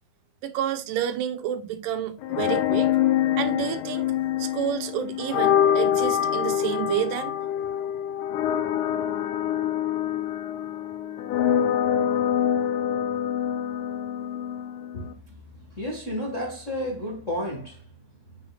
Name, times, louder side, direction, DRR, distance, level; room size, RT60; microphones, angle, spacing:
voice 1, 0.4-2.9 3.3-4.0 4.4-7.3, right 10 dB, 75° right, 2.3 m, -29 dB
sound 1, 2.2-15.1, left 10 dB, 75° left, 2.0 m, -25 dB
voice 2, 14.9-18.4, equal, 50° left, 0.9 m, -33 dB
7.7 x 5.8 x 2.3 m
omnidirectional pair, 4.0 m